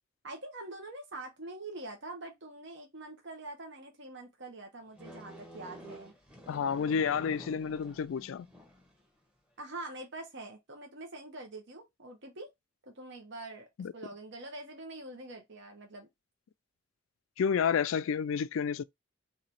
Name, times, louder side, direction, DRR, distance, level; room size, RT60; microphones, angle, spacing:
voice 1, 0.2-6.1 9.6-12.5 12.9-16.1, right 2 dB, 65° right, 1.1 m, -45 dB
sound 1, 5.0-9.0, equal, 5° right, 1.0 m, -49 dB
voice 2, 6.5-8.5 13.8-13.9 17.4-18.8, left 6 dB, 90° left, 0.4 m, -30 dB
3.3 x 3.0 x 4.1 m
head